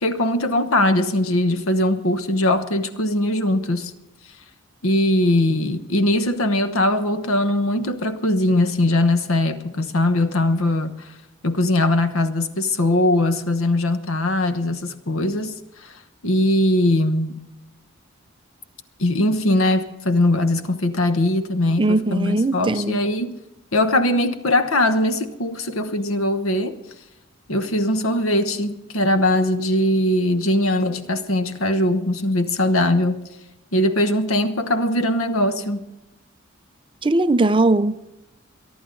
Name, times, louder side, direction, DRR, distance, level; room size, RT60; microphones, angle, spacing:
voice 1, 0.0-3.9 4.8-11.0 11.4-15.5 15.8-15.9 16.2-17.4 19.0-23.4 23.7-26.8 27.5-33.2 33.7-35.8, left 1 dB, 90° left, 1.1 m, -20 dB
voice 2, 21.8-23.0 37.0-38.1, right 2 dB, 25° right, 0.6 m, -19 dB
23.5 x 11.0 x 3.9 m
head